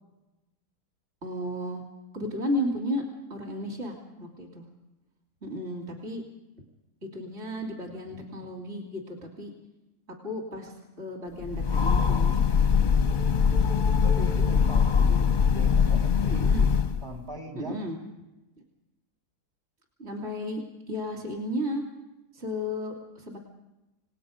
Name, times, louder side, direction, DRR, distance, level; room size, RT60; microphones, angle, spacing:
voice 1, 1.2-1.8 2.1-3.0 3.3-4.7 5.4-6.2 7.1-9.5 10.2-12.3 15.0-15.3 16.3-16.7 17.5-18.0 20.0-20.6 20.9-21.8 22.3-23.4, left 1 dB, 40° right, 0 dB, 3.4 m, -33 dB
Train, 11.4-17.2, left 6 dB, 40° left, 0.7 m, -22 dB
voice 2, 13.3-16.5 17.0-17.9, right 2 dB, 70° right, 1 dB, 4.6 m, -41 dB
28.5 x 19.0 x 5.2 m, 1.0 s
omnidirectional pair, 1.8 m